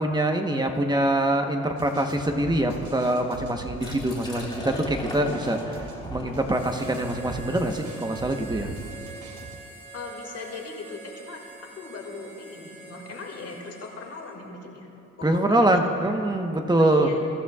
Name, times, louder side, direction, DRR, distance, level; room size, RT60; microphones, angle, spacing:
voice 1, 0.0-5.8 6.1-8.7 15.2-17.1, right 1 dB, 15° right, 4 dB, 1.1 m, -24 dB
sound 1, 1.8-9.6, right 3 dB, 75° right, 1.8 m, -42 dB
Liquid, 3.7-9.4, left 1 dB, 15° left, 2.6 m, -39 dB
Harmonica, 6.5-14.5, right 3 dB, 35° right, 3.5 m, -45 dB
voice 2, 9.9-14.9 15.2-15.7 16.0-16.2 16.8-17.2, left 4 dB, 55° left, 1 dB, 2.3 m, -39 dB
22.5 x 13.0 x 2.4 m, 2.9 s
cardioid pair, 90°, 30 cm